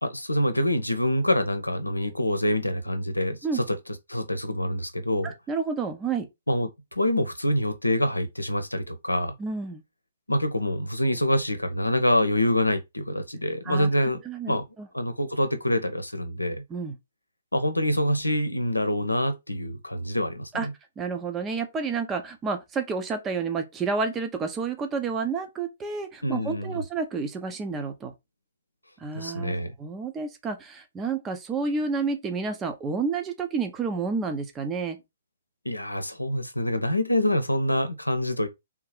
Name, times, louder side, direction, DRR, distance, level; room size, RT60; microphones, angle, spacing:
voice 1, 0.0-3.8 4.1-5.3 6.5-9.3 10.3-14.2 14.5-14.7 14.9-16.6 17.5-20.7 26.2-26.8 29.1-29.8 35.6-38.5, left 1 dB, 90° left, 0.7 m, -26 dB
voice 2, 5.2-6.3 9.4-9.8 13.6-13.9 14.2-14.9 16.7-17.0 20.5-20.7 21.0-28.1 29.0-35.0, right 4 dB, 15° right, 0.8 m, -30 dB
3.6 x 2.8 x 4.8 m
figure-of-eight pair, 125°, 0 cm